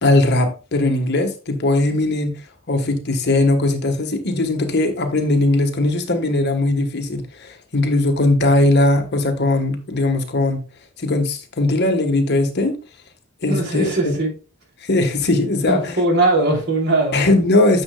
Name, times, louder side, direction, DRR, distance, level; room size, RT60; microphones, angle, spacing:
voice 1, 0.0-2.4 2.7-10.6 11.0-12.8 13.4-14.1 14.8-16.0 17.1-17.8, left 2 dB, 55° left, 1.3 m, -19 dB
voice 2, 13.5-14.3 15.7-17.2, right 2 dB, 55° right, 3.0 m, -19 dB
9.7 x 6.6 x 2.3 m
head